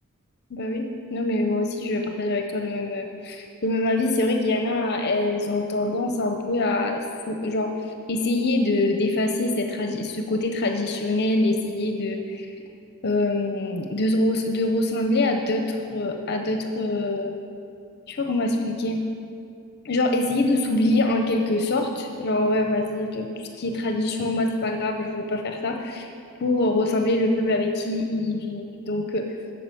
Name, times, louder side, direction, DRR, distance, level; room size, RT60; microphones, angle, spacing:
voice 1, 0.5-7.7 8.1-12.5 13.0-17.3 18.1-19.0 19.8-26.1 26.4-29.2, left 2 dB, 50° left, 4 dB, 0.7 m, -24 dB
8.7 x 6.6 x 7.7 m, 2.4 s
head